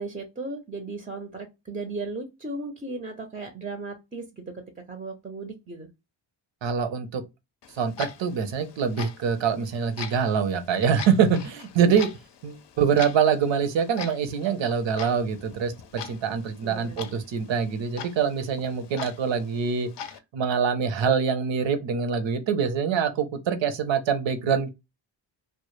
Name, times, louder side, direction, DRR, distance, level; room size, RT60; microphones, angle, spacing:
voice 1, 0.0-4.6 4.9-5.9 16.6-17.1, right 3 dB, 20° right, 0.5 m, -36 dB
voice 2, 6.6-7.2 7.7-12.1 12.4-19.9 20.3-24.7, right 6 dB, 70° right, 0.7 m, -25 dB
Clock, 7.6-20.2, left 8 dB, 60° left, 0.6 m, -42 dB
2.1 x 2.1 x 3.0 m
cardioid pair, 75°, 47 cm